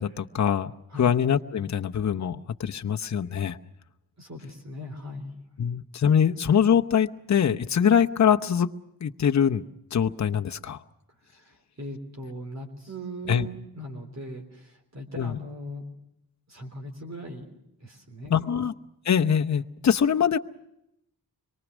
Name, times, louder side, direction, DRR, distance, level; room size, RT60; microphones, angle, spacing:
voice 1, 0.0-3.6 5.6-8.7 9.0-9.6 9.9-10.8 13.3-13.5 15.2-15.4 18.3-18.7 19.1-20.4, left 8 dB, 50° left, 6 dB, 0.9 m, -23 dB
voice 2, 4.2-5.3 11.3-15.8 16.5-17.4 17.8-18.5, equal, 45° right, 3 dB, 3.6 m, -39 dB
25.5 x 23.0 x 6.2 m, 0.81 s
wide cardioid pair, 145°, 37 cm